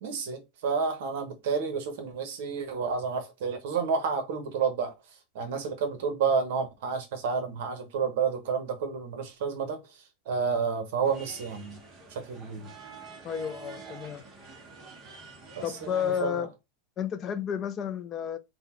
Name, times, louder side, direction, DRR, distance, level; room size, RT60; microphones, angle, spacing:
voice 1, 0.0-4.9 5.3-9.8 10.3-11.8 12.1-12.7 15.6-16.5, right 5 dB, 55° right, 0.9 m, -30 dB
sound 1, 11.0-16.2, right 4 dB, 20° right, 0.8 m, -47 dB
voice 2, 13.2-14.2 15.6-16.5 17.0-18.4, left 9 dB, 20° left, 0.3 m, -31 dB
4.0 x 2.1 x 4.2 m
supercardioid pair, 175°, 0 cm